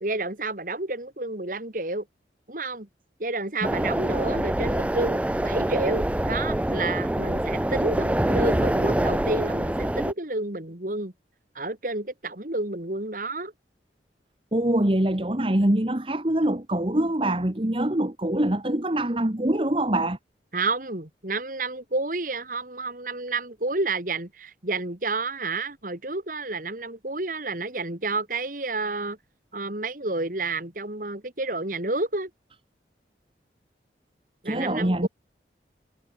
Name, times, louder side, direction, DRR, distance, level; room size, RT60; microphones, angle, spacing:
voice 1, 0.0-2.1 2.5-2.9 3.2-11.1 11.5-13.5 20.5-29.2 29.5-32.3 34.4-35.1, right 2 dB, 45° right, 2.4 m, -30 dB
sound 1, 3.6-10.1, right 1 dB, 5° right, 0.3 m, -25 dB
voice 2, 14.5-20.2 34.4-35.1, right 1 dB, 30° right, 1.4 m, -24 dB
head